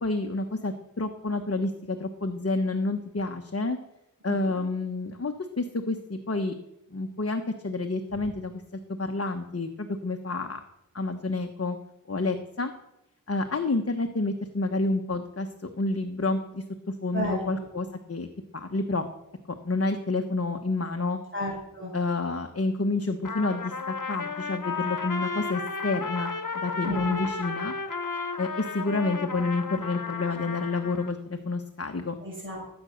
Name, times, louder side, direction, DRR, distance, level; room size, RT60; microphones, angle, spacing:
voice 1, 0.0-3.8 4.2-6.5 6.9-10.6 10.9-11.8 12.1-12.7 13.3-18.3 18.5-19.1 19.6-21.2 21.9-27.7 28.4-32.2, left 3 dB, 40° left, 5 dB, 1.3 m, -29 dB
voice 2, 4.2-4.6 17.1-17.7 21.3-21.9 26.8-27.3 32.2-32.8, equal, 35° right, -4 dB, 7.8 m, -34 dB
Trumpet, 23.2-31.1, left 4 dB, 60° left, 1.4 m, -33 dB
19.5 x 9.1 x 6.5 m, 0.86 s
wide cardioid pair, 75°, 35 cm